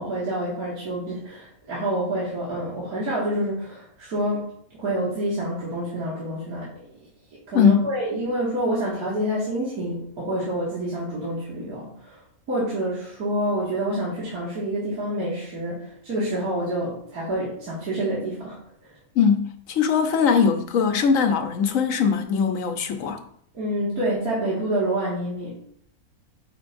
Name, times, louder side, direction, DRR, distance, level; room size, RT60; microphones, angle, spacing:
voice 1, 0.0-6.7 7.5-12.2 12.5-18.9 23.5-25.6, right 1 dB, 75° right, 2.5 m, -27 dB
voice 2, 7.5-7.9 19.1-23.2, left 6 dB, 65° left, 1.1 m, -21 dB
9.1 x 5.7 x 2.6 m
omnidirectional pair, 1.6 m